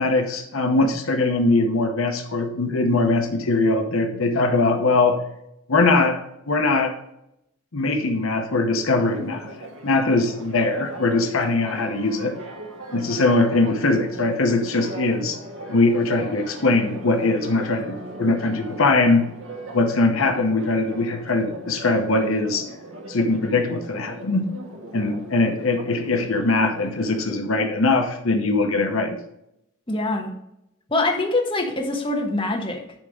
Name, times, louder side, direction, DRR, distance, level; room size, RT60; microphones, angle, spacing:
voice 1, 0.0-5.2 5.7-7.0 7.7-9.5 9.8-12.4 12.9-15.4 15.7-19.3 19.7-22.7 23.1-24.5 24.9-29.2, left 3 dB, 70° left, 5 dB, 0.9 m, -21 dB
Church bell, 9.0-27.4, right 2 dB, 70° right, 1.4 m, -39 dB
voice 2, 29.9-30.3 30.9-32.8, left 2 dB, 25° left, 0 dB, 1.3 m, -24 dB
10.5 x 3.5 x 6.5 m, 0.81 s
head